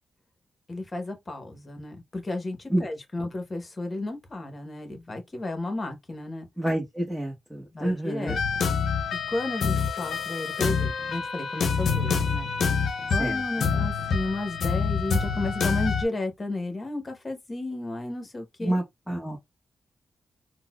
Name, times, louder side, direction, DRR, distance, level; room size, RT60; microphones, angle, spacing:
voice 1, 0.7-6.5 7.7-8.4 9.3-12.5 13.1-18.8, left 2 dB, 35° left, 1.0 m, -33 dB
voice 2, 6.6-8.4 13.2-13.7 18.6-19.4, right 1 dB, ahead, 1.0 m, -29 dB
sound 1, 8.3-16.0, left 5 dB, 80° left, 0.6 m, -26 dB
3.9 x 2.1 x 2.3 m
cardioid pair, 85°, 0 cm